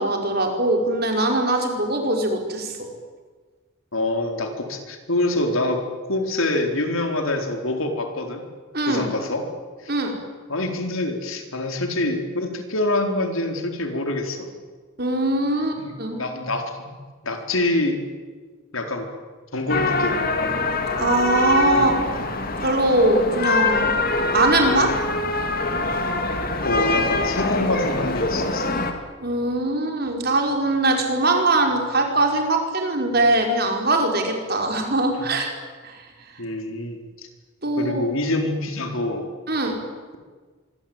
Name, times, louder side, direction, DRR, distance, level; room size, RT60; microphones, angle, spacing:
voice 1, 0.0-2.7 8.7-9.1 9.9-10.1 15.0-16.2 21.0-21.9 22.6-24.9 29.2-35.5 35.8-36.0 37.6-38.1 39.5-39.8, right 2 dB, 45° right, 3 dB, 5.1 m, -21 dB
voice 2, 3.9-8.4 8.9-9.5 9.8-9.9 10.5-14.6 15.8-16.7 17.2-18.0 18.7-19.1 19.5-20.5 21.7-22.3 26.6-28.8 29.7-30.0 36.4-37.3 37.8-39.3, left 2 dB, 75° left, 5 dB, 4.3 m, -26 dB
sound 1, 19.7-28.9, left 3 dB, 45° left, 2.8 m, -24 dB
25.5 x 23.5 x 9.1 m, 1.4 s
head